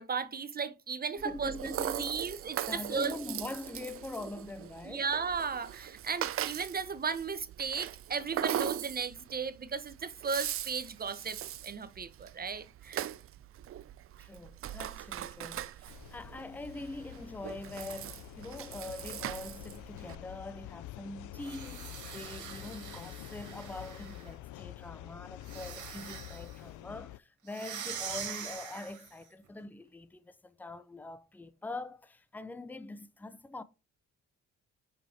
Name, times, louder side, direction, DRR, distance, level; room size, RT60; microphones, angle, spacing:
voice 1, 0.0-3.1 4.8-13.1, right 5 dB, 30° right, 0.8 m, -36 dB
voice 2, 1.1-2.4 2.7-5.1 14.2-33.6, left 2 dB, 5° left, 0.5 m, -43 dB
Rattle (instrument), 1.2-20.1, right 11 dB, 50° right, 0.4 m, -40 dB
sound 1, 15.9-27.2, left 15 dB, 80° left, 0.5 m, -47 dB
sound 2, 21.3-24.3 25.4-26.6 27.5-29.2, right 7 dB, 80° right, 1.9 m, -43 dB
5.2 x 5.0 x 4.2 m
cardioid pair, 90°, 30 cm